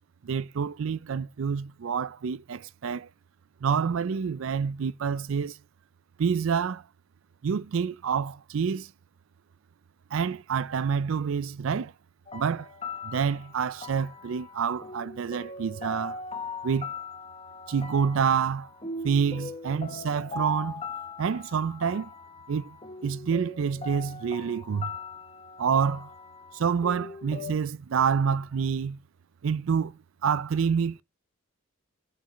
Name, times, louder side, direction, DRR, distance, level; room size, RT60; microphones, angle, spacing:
voice 1, 0.2-3.1 3.6-5.6 6.2-6.8 7.4-8.9 10.1-11.9 12.3-12.7 13.0-16.2 16.6-16.9 17.7-18.7 19.0-20.8 21.2-22.1 22.5-22.8 23.0-24.9 25.6-26.1 26.5-29.0 29.4-31.0, right 6 dB, 70° right, 0.4 m, -27 dB
sound 1, 12.3-27.5, left 3 dB, 25° left, 0.8 m, -40 dB
15.0 x 5.3 x 3.1 m
head